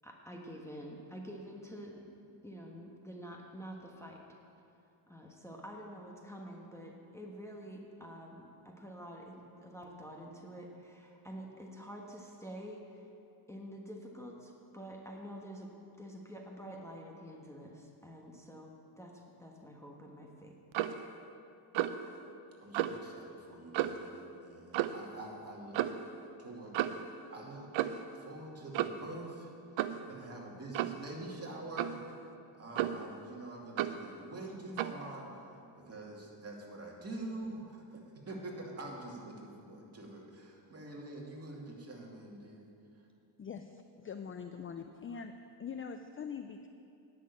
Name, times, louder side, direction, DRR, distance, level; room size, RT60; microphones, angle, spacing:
voice 1, 0.0-2.1 2.4-4.2 5.1-13.0 13.5-15.7 16.0-20.6, equal, 5° left, -1 dB, 1.3 m, -48 dB
Clock, 20.7-21.0 21.7-22.0 22.7-23.0 23.7-24.1 24.7-25.0 25.7-26.0 26.7-27.1 27.7-28.1 28.7-29.1 29.8-30.0 30.7-31.0 31.8-32.0 32.7-33.1 33.8-34.0 34.8-35.0, right 12 dB, 70° right, 0.6 m, -33 dB
voice 2, 22.6-25.8 26.4-26.8 27.3-27.8 28.1-29.5 30.0-32.0 32.6-42.7, right 2 dB, 30° right, -2 dB, 2.5 m, -46 dB
voice 3, 43.4-45.3 45.6-46.7, left 6 dB, 25° left, 7 dB, 0.4 m, -43 dB
10.0 x 6.5 x 8.6 m, 2.6 s
cardioid pair, 90°, 49 cm